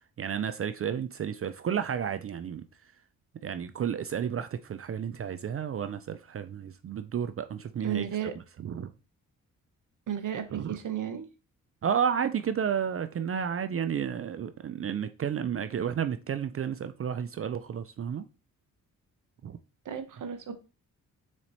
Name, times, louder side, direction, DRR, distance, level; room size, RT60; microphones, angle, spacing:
voice 1, 0.2-2.7 3.4-8.1 8.3-8.9 10.5-10.8 11.8-18.3 19.4-19.6, right 8 dB, 40° right, 0.4 m, -32 dB
voice 2, 7.8-8.3 10.1-11.3 19.9-20.6, right 9 dB, 60° right, 0.9 m, -33 dB
4.1 x 3.2 x 4.0 m
supercardioid pair, 55°, 36 cm